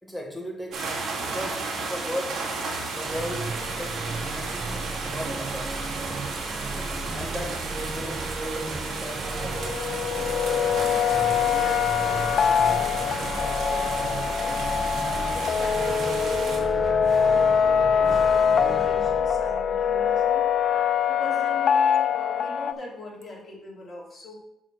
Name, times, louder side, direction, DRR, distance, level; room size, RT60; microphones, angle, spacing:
voice 1, 0.0-0.8 1.1-2.4 2.9-4.5 5.1-5.8 7.1-9.9 24.3-24.4, equal, 5° left, 1 dB, 1.8 m, -36 dB
sound 1, 0.7-16.6, right 3 dB, 70° right, 2.0 m, -33 dB
sound 2, 3.0-20.5, right 2 dB, 35° right, 1.4 m, -35 dB
sound 3, 9.4-22.7, left 7 dB, 60° left, 0.4 m, -23 dB
voice 2, 10.8-20.5 21.1-24.4, left 2 dB, 40° left, -4 dB, 3.4 m, -41 dB
6.8 x 4.4 x 6.2 m, 0.80 s
cardioid pair, 85°, 0 cm